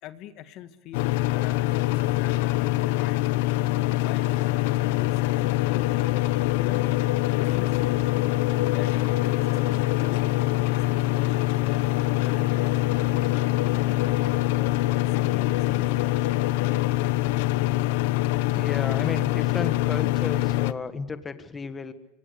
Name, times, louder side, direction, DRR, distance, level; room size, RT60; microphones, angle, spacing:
voice 1, 0.0-3.3 3.9-6.1 6.5-8.3 8.6-11.9 12.2-14.0 14.5-16.1, left 11 dB, 50° left, 11 dB, 1.8 m, -43 dB
sound 1, 0.9-20.7, left 17 dB, 70° left, 1.0 m, -24 dB
voice 2, 18.5-21.9, left 4 dB, 15° left, 10 dB, 1.6 m, -33 dB
26.0 x 23.5 x 8.1 m, 0.96 s
supercardioid pair, 130°, 0 cm